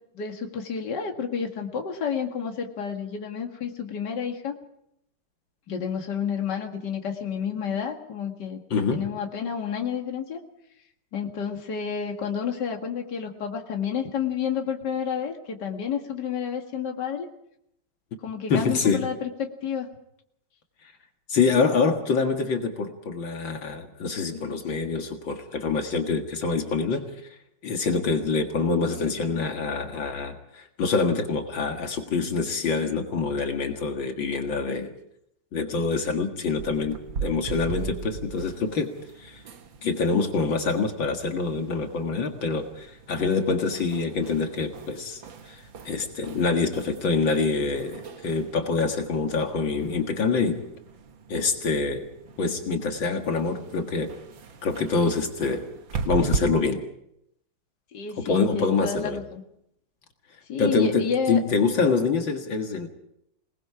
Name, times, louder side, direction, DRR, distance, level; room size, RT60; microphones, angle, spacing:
voice 1, 0.1-4.6 5.7-8.6 8.9-10.4 11.1-17.3 18.2-19.9 57.9-59.4 60.5-61.4, left 7 dB, 60° left, 3 dB, 2.5 m, -30 dB
voice 2, 8.7-9.0 18.5-19.0 21.3-27.1 27.6-34.9 35.5-38.9 39.2-39.4 39.8-45.2 45.5-50.6 51.3-52.1 52.4-54.1 54.6-55.6 56.0-56.8 58.2-59.2 60.6-62.9, left 4 dB, 75° left, 4 dB, 2.6 m, -25 dB
sound 1, 36.6-56.4, right 5 dB, 75° right, 2.2 m, -39 dB
27.5 x 19.5 x 4.9 m, 0.76 s
omnidirectional pair, 2.1 m